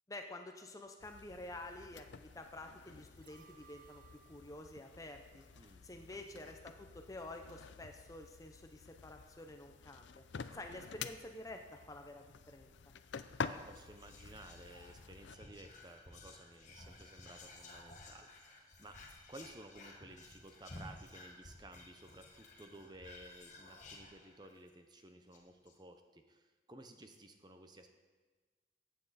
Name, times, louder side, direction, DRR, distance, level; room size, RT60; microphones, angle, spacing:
voice 1, 0.1-4.0 4.3-5.4 5.8-10.2 10.5-12.7, left 2 dB, 15° left, 5 dB, 0.6 m, -49 dB
sound 1, 1.0-15.4, left 5 dB, 70° left, 0.5 m, -49 dB
sound 2, 3.1-6.3 6.6-6.7, right 7 dB, 45° right, 1.1 m, -65 dB
voice 2, 5.5-6.5 10.5-10.7 13.4-19.0 19.3-27.9, right 1 dB, 20° right, 6 dB, 0.7 m, -56 dB
Whispering, 13.6-24.7 25.0-25.1 25.3-25.7, left 2 dB, 40° left, 1.4 m, -55 dB
14.5 x 8.7 x 4.2 m, 1.3 s
head